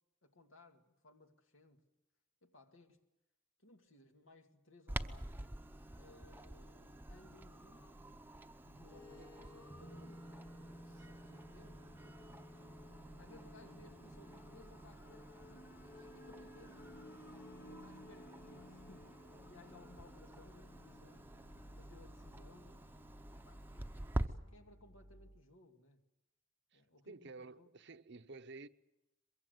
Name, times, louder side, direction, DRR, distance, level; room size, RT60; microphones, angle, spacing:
voice 1, 0.2-1.8 2.4-3.0 3.6-5.5 6.0-8.2 8.6-10.2 10.5-11.8 13.2-16.9 17.7-21.3 21.8-22.8 23.3-26.0 26.7-27.7, left 2 dB, 80° left, 2.3 m, -63 dB
Clock, 4.9-24.3, right 1 dB, 10° right, 0.8 m, -48 dB
sound 1, 8.9-25.4, left 1 dB, 50° left, 1.4 m, -58 dB
sound 2, 9.7-18.8 19.1-19.2, equal, 15° left, 1.1 m, -58 dB
voice 2, 26.7-28.7, right 3 dB, 60° right, 0.8 m, -53 dB
23.5 x 22.5 x 8.1 m
head